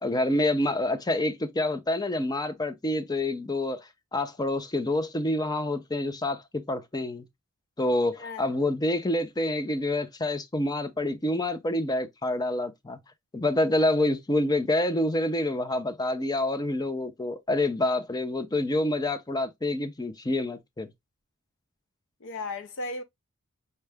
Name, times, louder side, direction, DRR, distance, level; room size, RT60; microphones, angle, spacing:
voice 1, 0.0-7.3 7.8-13.0 13.3-20.9, left 1 dB, 20° left, 0.6 m, -27 dB
voice 2, 8.1-8.5 22.2-23.0, left 2 dB, 60° left, 0.7 m, -35 dB
5.5 x 2.4 x 3.3 m
head